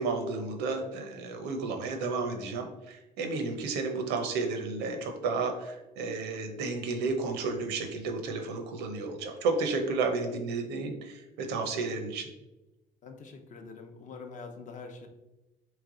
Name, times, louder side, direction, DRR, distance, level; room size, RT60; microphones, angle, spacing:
voice 1, 0.0-12.3, right 3 dB, 90° right, 5 dB, 0.7 m, -32 dB
voice 2, 13.0-15.1, left 4 dB, 50° left, 5 dB, 0.6 m, -45 dB
3.2 x 3.2 x 3.7 m, 1.0 s
cardioid pair, 110°, 17 cm